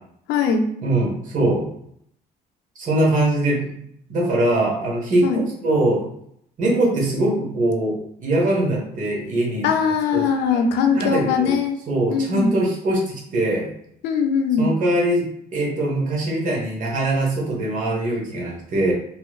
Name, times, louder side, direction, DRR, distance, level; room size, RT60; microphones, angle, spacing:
voice 1, 0.3-0.6 5.2-5.4 9.6-11.8 12.1-12.5 14.0-14.7, left 6 dB, 85° left, 5 dB, 0.5 m, -20 dB
voice 2, 0.8-1.7 2.7-3.7 4.1-5.3 5.6-6.1 6.6-9.7 10.1-10.6 10.9-11.6 11.9-13.7 14.6-15.3 15.5-18.9, right 1 dB, 50° right, -2 dB, 1.3 m, -22 dB
3.0 x 2.9 x 2.3 m, 0.69 s
cardioid pair, 110°, 17 cm